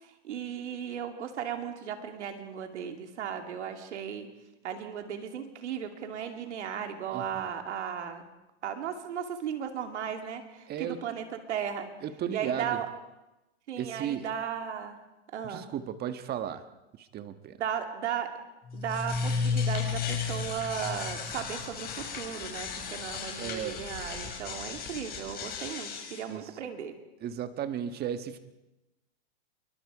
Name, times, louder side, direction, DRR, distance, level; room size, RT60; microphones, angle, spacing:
voice 1, 0.2-4.3 4.6-8.2 8.6-11.9 12.3-12.9 13.7-15.0 15.3-15.7 17.6-18.3 18.7-26.9, right 8 dB, 85° right, 5 dB, 2.7 m, -36 dB
voice 2, 7.1-7.5 10.7-11.0 12.0-12.8 13.8-14.3 15.4-16.6 16.9-17.6 23.4-23.8 26.3-26.6 27.2-28.4, right 9 dB, 30° right, 10 dB, 1.4 m, -35 dB
sound 1, 18.7-26.2, left 5 dB, 25° left, 5.9 m, -34 dB
27.5 x 23.0 x 5.0 m, 0.98 s
hypercardioid pair, 130°, 34 cm